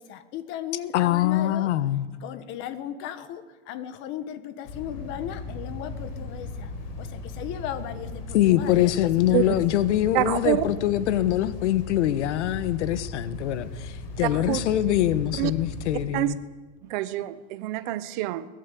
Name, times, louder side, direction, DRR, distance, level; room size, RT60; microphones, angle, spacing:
voice 1, 0.0-1.7 2.2-6.7 7.0-9.6, left 10 dB, 30° left, 1.5 m, -36 dB
voice 2, 0.9-2.1 8.3-16.4, left 13 dB, 65° left, 1.5 m, -24 dB
sound 1, 4.6-16.0, left 3 dB, 50° left, 7.3 m, -37 dB
voice 3, 10.1-10.7 14.2-14.7 15.4-15.5 16.1-16.3 16.8-18.5, right 16 dB, 40° right, 0.9 m, -26 dB
23.0 x 20.5 x 8.5 m
supercardioid pair, 175°, 37 cm